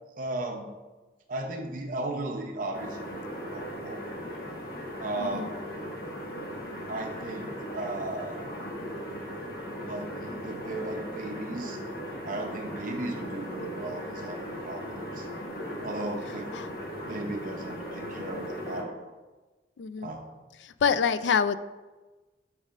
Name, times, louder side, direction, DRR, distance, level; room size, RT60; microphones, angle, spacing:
voice 1, 0.2-0.8 1.3-4.0 5.0-5.5 6.9-8.4 9.8-11.8 12.3-15.3 15.8-19.0 20.0-20.3, right 2 dB, 50° right, 2 dB, 0.6 m, -36 dB
sound 1, 2.7-18.8, equal, 55° left, 1.4 m, -38 dB
voice 2, 5.2-5.5 16.5-16.7 19.8-20.1 20.6-21.6, left 6 dB, 85° left, 14 dB, 0.3 m, -26 dB
7.3 x 6.1 x 2.5 m, 1.2 s
head